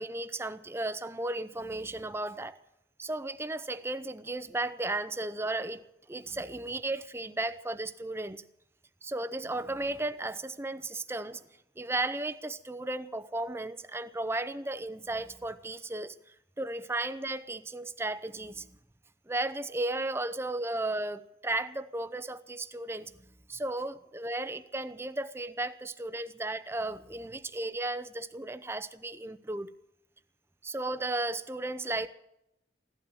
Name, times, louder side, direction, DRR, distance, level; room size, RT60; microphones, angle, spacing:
voice 1, 0.0-2.6 3.0-8.4 9.0-11.5 11.8-16.1 16.6-18.8 19.3-23.1 23.5-29.7 30.6-32.1, right 2 dB, 15° right, 0.6 m, -34 dB
16.0 x 12.0 x 6.8 m
head